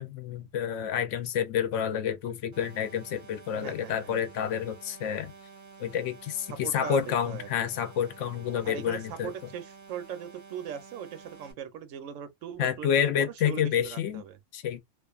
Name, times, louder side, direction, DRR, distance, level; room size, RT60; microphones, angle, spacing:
voice 1, 0.0-5.3 5.8-9.3 12.6-14.2 14.5-14.8, left 9 dB, 75° left, 0.9 m, -29 dB
sound 1, 2.5-11.5, right 5 dB, 20° right, 0.6 m, -50 dB
voice 2, 3.5-4.1 6.6-7.5 8.6-14.4, right 8 dB, 80° right, 1.0 m, -40 dB
2.5 x 2.4 x 2.3 m
omnidirectional pair, 1.3 m